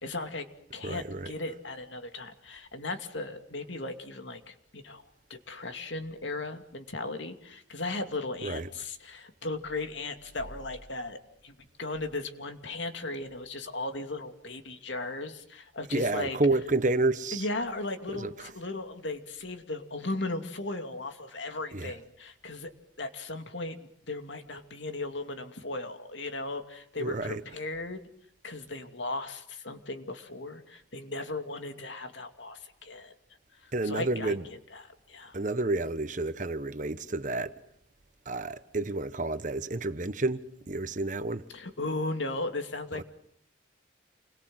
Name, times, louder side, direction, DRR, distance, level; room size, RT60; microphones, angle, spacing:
voice 1, 0.0-0.5 0.7-5.0 5.3-16.4 17.3-22.7 23.0-23.7 24.1-28.0 28.4-33.1 33.5-34.4 34.7-35.4 41.5-43.0, left 2 dB, 70° left, 2.6 m, -37 dB
voice 2, 0.8-1.3 8.4-8.7 15.9-17.4 18.1-18.5 21.7-21.9 27.0-27.4 33.7-34.4 35.3-37.6 38.2-41.4 43.0-43.1, right 2 dB, 40° right, 1.1 m, -30 dB
29.0 x 22.0 x 7.8 m
head